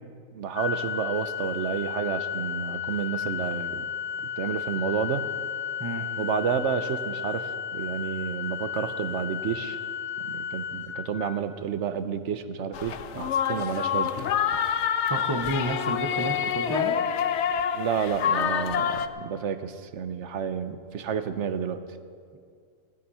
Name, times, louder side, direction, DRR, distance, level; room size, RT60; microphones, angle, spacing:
voice 1, 0.3-3.9 4.4-5.3 6.2-9.8 10.2-14.1 17.7-21.8, right 7 dB, 60° right, 11 dB, 1.0 m, -30 dB
Organ, 0.6-11.6, left 8 dB, 80° left, 0.3 m, -33 dB
sound 1, 12.7-19.1, left 8 dB, 65° left, 0.9 m, -27 dB
voice 2, 15.1-17.0, right 1 dB, 20° right, 4 dB, 0.8 m, -30 dB
15.5 x 12.0 x 5.6 m, 2.2 s
omnidirectional pair, 1.4 m